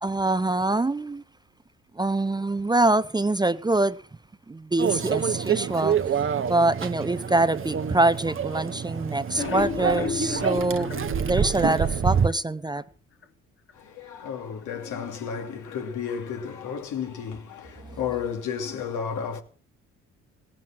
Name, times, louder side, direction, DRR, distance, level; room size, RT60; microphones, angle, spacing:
voice 1, 0.0-1.2 1.9-4.0 4.5-6.0 6.4-10.9 11.2-12.8, right 2 dB, 15° right, 0.6 m, -24 dB
Microwave oven, 4.8-12.3, right 7 dB, 45° right, 1.0 m, -27 dB
sound 1, 9.3-12.4 12.8-12.9 13.2-13.3 13.7-13.8, left 6 dB, 40° left, 1.5 m, -33 dB
voice 2, 13.7-19.4, left 7 dB, 75° left, 2.8 m, -32 dB
17.0 x 7.5 x 7.5 m
cardioid pair, 90°, 30 cm